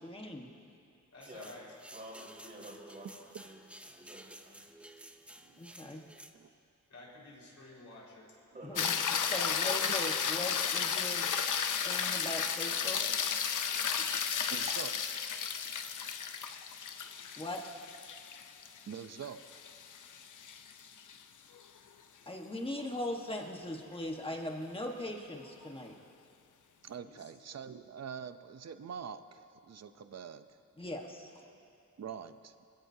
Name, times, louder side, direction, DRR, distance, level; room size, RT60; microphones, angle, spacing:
voice 1, 0.0-0.5 5.6-6.1 8.6-9.0 9.3-11.3 11.8-13.0 17.4-17.6 22.3-25.9 30.8-31.3, left 1 dB, 20° left, 1 dB, 1.4 m, -39 dB
voice 2, 1.1-1.7 6.9-8.3 27.0-27.3, left 2 dB, 65° left, -5 dB, 4.6 m, -51 dB
sound 1, 1.2-6.3, right 1 dB, 5° right, 0.6 m, -53 dB
voice 3, 1.9-3.1 3.4-3.6 3.9-4.6 8.5-8.9 31.1-31.6, right 1 dB, 30° right, -5 dB, 4.5 m, -50 dB
sound 2, 8.8-21.2 25.6-25.7, left 7 dB, 80° left, 0.7 m, -33 dB
voice 4, 14.5-15.3 18.9-19.7 26.8-30.6 32.0-32.5, right 7 dB, 60° right, 10 dB, 0.7 m, -45 dB
26.0 x 16.5 x 2.8 m, 2.5 s
wide cardioid pair, 155°, 30 cm